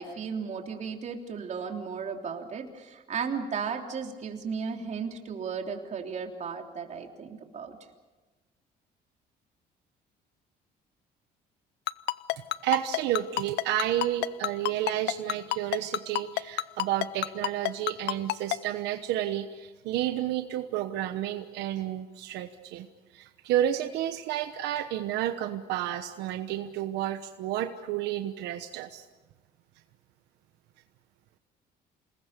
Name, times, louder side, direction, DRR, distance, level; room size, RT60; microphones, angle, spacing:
voice 1, 0.0-7.8, right 6 dB, 45° right, 3 dB, 3.5 m, -35 dB
Ringtone, 11.9-18.6, left 17 dB, 85° left, 0.7 m, -27 dB
voice 2, 12.6-22.9 23.1-29.0, right 12 dB, 85° right, 7 dB, 1.2 m, -31 dB
28.5 x 20.5 x 6.8 m, 1.2 s
cardioid pair, 110°, 17 cm